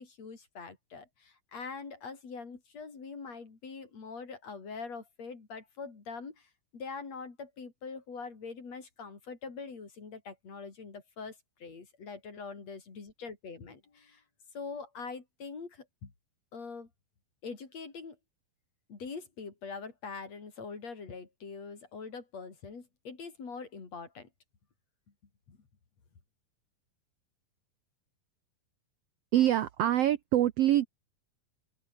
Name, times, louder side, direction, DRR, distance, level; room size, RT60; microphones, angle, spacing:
voice 1, 0.0-14.2 14.5-16.1 16.5-16.9 17.4-18.2 18.9-24.3 25.5-25.6, left 5 dB, 50° left, 5.2 m, -43 dB
voice 2, 29.3-30.9, right 12 dB, 85° right, 1.3 m, -25 dB
open air
omnidirectional pair, 4.1 m